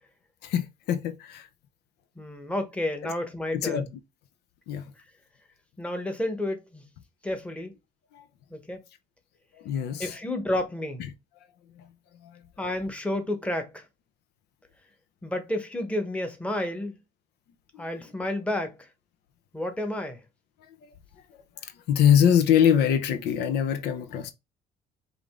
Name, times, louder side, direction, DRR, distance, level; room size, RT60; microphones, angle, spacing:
voice 1, 0.4-1.5 3.5-3.9 4.7-4.9 8.1-8.2 9.6-10.2 11.8-11.9 12.2-12.4 21.6-24.3, left 9 dB, 80° left, 0.7 m, -23 dB
voice 2, 2.2-3.9 5.8-6.8 7.2-7.7 8.5-8.8 10.0-11.0 12.6-13.8 15.2-16.9 17.8-18.9 19.5-20.2, left 1 dB, 5° left, 1.1 m, -31 dB
5.0 x 2.7 x 3.6 m
cardioid pair, 110°, 17 cm